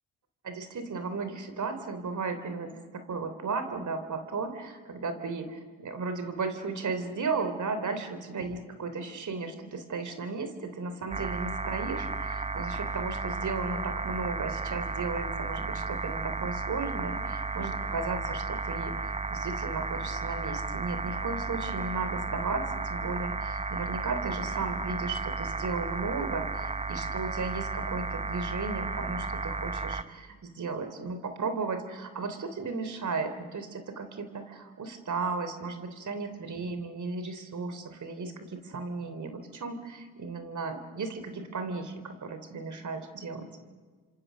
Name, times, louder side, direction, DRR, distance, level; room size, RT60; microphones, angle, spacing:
voice 1, 0.4-19.0 19.3-43.5, right 4 dB, 50° right, 8 dB, 3.6 m, -35 dB
sound 1, 11.1-30.0, right 3 dB, 20° right, 1.0 m, -33 dB
28.5 x 26.5 x 6.3 m, 1.5 s
supercardioid pair, 50°, 37 cm